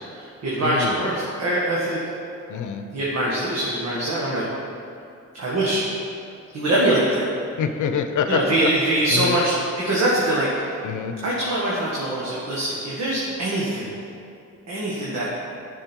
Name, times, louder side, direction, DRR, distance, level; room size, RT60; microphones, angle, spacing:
voice 1, 0.1-2.0 2.9-4.4 5.4-5.9 6.5-7.3 8.3-10.8 11.2-13.9 14.7-15.3, right 1 dB, 60° right, -6 dB, 1.8 m, -23 dB
voice 2, 0.6-1.0 2.5-2.8 7.6-8.7 9.1-9.4 10.8-11.2, left 7 dB, 90° left, 7 dB, 0.7 m, -26 dB
11.5 x 6.2 x 4.6 m, 2.6 s
cardioid pair, 130°, 30 cm